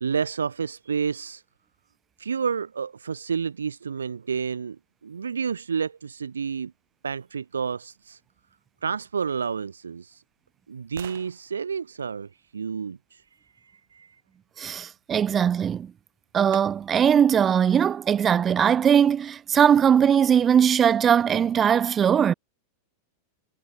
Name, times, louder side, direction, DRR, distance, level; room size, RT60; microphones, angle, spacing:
voice 1, 0.0-1.4 2.2-4.8 5.0-6.7 7.0-8.2 8.8-10.2 10.7-13.2 13.6-14.2, right 6 dB, 70° right, 0.6 m, -30 dB
sound 1, 9.6-13.5 15.6-15.7 16.5-17.2 17.7-17.8, right 16 dB, 55° right, 6.2 m, -49 dB
voice 2, 14.6-15.9 16.3-22.3, right 8 dB, 25° right, 1.5 m, -20 dB
figure-of-eight pair, 90°, 0 cm